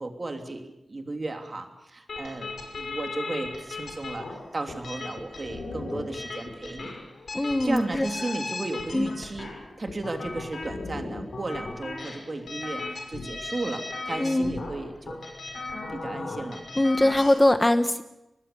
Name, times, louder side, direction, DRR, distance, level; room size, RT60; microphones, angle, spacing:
voice 1, 0.0-6.9 7.6-9.5 9.8-15.3 15.9-16.6, right 2 dB, 40° right, 5 dB, 3.0 m, -34 dB
sound 1, 2.1-17.4, left 3 dB, 80° left, 5.8 m, -37 dB
voice 2, 7.3-8.1 8.9-9.1 14.2-14.5 16.8-18.0, left 1 dB, 20° left, 10 dB, 1.1 m, -22 dB
24.5 x 20.0 x 6.9 m, 0.92 s
wide cardioid pair, 85°, 0 cm